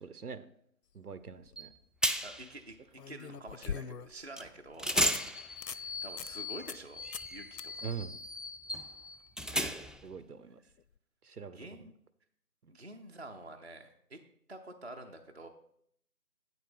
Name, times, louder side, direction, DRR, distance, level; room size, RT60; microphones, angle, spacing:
voice 1, 0.0-0.5 0.9-1.7 5.7-5.9 7.8-8.1 10.0-10.6 11.2-11.9 12.6-12.7, right 6 dB, 70° right, 13 dB, 0.8 m, -43 dB
sound 1, 1.2-1.6 3.0-4.3 4.7-4.8 5.1-5.2 5.6-5.8 6.2-6.3 6.7-6.9 7.1-7.3 7.6-7.7 10.8-10.9, left 7 dB, 85° left, 0.6 m, -41 dB
sound 2, 1.6-1.7 2.0-2.5 4.4-4.5 4.8-10.1, equal, ahead, 0.3 m, -35 dB
voice 2, 2.2-5.5 6.0-7.0 7.3-7.9 9.5-9.8 11.5-11.9 12.7-14.2 14.5-15.5, right 2 dB, 45° right, 3 dB, 0.6 m, -48 dB
8.7 x 4.3 x 6.7 m, 0.70 s
figure-of-eight pair, 170°, 47 cm